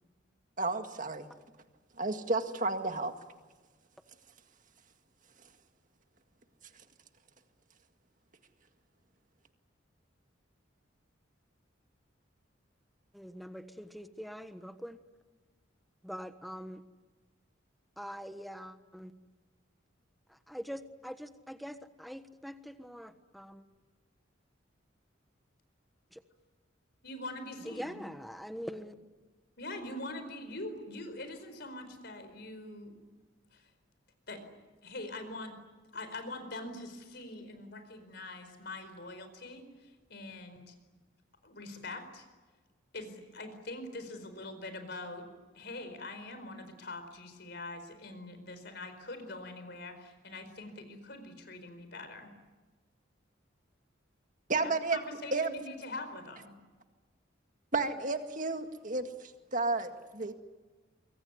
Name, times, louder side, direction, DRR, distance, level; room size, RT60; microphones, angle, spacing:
voice 1, 0.6-1.3 2.0-3.1 54.5-55.0 55.3-55.5 57.7-60.3, right 3 dB, 40° right, 6 dB, 2.0 m, -32 dB
voice 2, 13.1-15.0 16.0-16.8 18.0-19.1 20.3-23.6 26.1-26.2 27.6-28.9, equal, ahead, 8 dB, 1.3 m, -43 dB
voice 3, 27.0-28.0 29.6-33.0 33.5-33.7 34.3-34.4 34.8-35.6 35.9-40.7 41.4-42.3 42.9-45.3 45.5-52.3 54.6-56.5, left 2 dB, 55° left, 8 dB, 4.7 m, -43 dB
24.5 x 24.0 x 9.7 m, 1.3 s
head